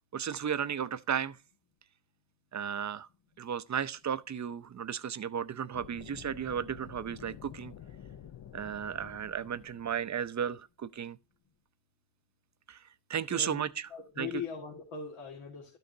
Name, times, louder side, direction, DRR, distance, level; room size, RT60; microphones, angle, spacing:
voice 1, 0.1-1.4 2.5-3.1 3.4-7.7 8.5-11.2 12.7-13.9 14.2-14.4, right 8 dB, 35° right, 0.6 m, -34 dB
sound 1, 5.7-10.5, left 9 dB, 45° left, 0.6 m, -50 dB
voice 2, 13.3-13.6 13.9-15.8, left 5 dB, 85° left, 1.9 m, -40 dB
12.0 x 6.7 x 2.7 m
cardioid pair, 65°, 50 cm